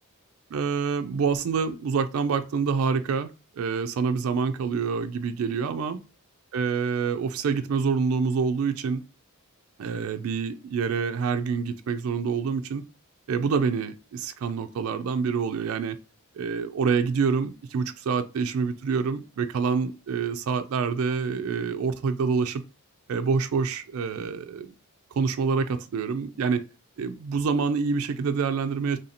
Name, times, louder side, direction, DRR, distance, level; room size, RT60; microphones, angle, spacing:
voice 1, 0.5-3.3 3.6-6.0 6.5-9.0 9.8-12.8 13.3-16.0 16.3-22.6 23.1-24.7 25.2-26.6 27.0-29.0, right 5 dB, 70° right, 0.4 m, -26 dB
3.2 x 2.7 x 4.1 m
head